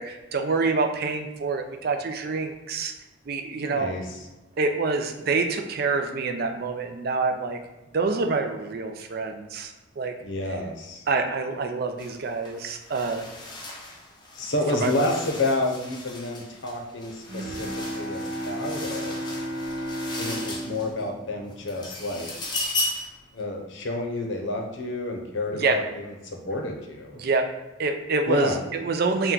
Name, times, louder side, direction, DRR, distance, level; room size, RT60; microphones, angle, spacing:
voice 1, 0.0-2.9 3.3-3.9 4.6-7.6 7.9-10.1 11.1-13.3 14.7-14.9 25.6-25.8 27.2-27.5 27.8-29.3, right 4 dB, 50° right, 6 dB, 0.4 m, -26 dB
voice 2, 3.6-4.2 10.2-11.0 14.3-17.7 17.9-19.2 20.2-22.3 23.3-27.2 28.3-28.6, left 2 dB, 65° left, 2 dB, 0.7 m, -29 dB
sound 1, 12.0-12.2 12.5-21.1 21.5-23.2, left 2 dB, 20° left, 0.5 m, -36 dB
Bowed string instrument, 17.3-22.4, equal, 80° right, 0.9 m, -34 dB
4.3 x 2.2 x 3.8 m, 1.1 s
head